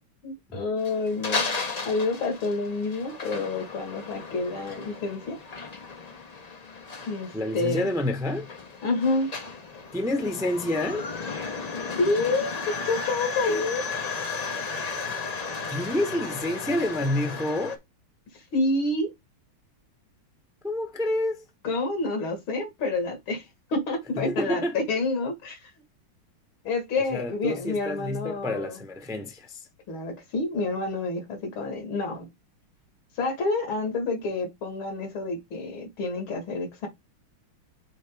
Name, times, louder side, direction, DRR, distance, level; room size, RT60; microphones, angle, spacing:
voice 1, 0.2-1.5 1.8-5.4 7.0-7.9 8.8-9.3 11.8-13.8 18.3-19.1 21.6-25.7 26.6-28.8 29.9-32.3 33.2-36.9, left 3 dB, 75° left, 2.6 m, -28 dB
sound 1, 0.8-17.8, left 4 dB, 45° left, 0.5 m, -35 dB
voice 2, 7.3-8.5 9.9-11.1 15.7-17.8 20.6-21.4 24.1-24.7 27.1-29.6, left 1 dB, 5° right, 0.7 m, -28 dB
6.5 x 4.4 x 3.5 m
omnidirectional pair, 2.3 m